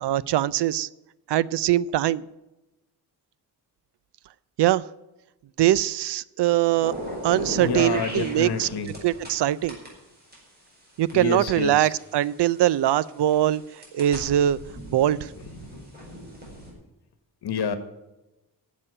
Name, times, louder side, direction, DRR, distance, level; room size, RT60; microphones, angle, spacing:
voice 1, 0.0-0.9 1.3-2.2 4.6-4.9 5.6-6.9 7.2-8.7 9.0-9.8 11.0-14.6 14.9-15.3, right 13 dB, 90° right, 20 dB, 0.6 m, -22 dB
sound 1, 6.8-9.4 9.7-12.6 13.2-16.7, equal, 25° right, 4.8 m, -37 dB
voice 2, 7.5-8.9 11.1-11.9 15.5-15.9 17.4-17.8, left 6 dB, 75° left, 10 dB, 1.4 m, -29 dB
11.0 x 7.6 x 9.8 m, 1.0 s
wide cardioid pair, 170°, 40 cm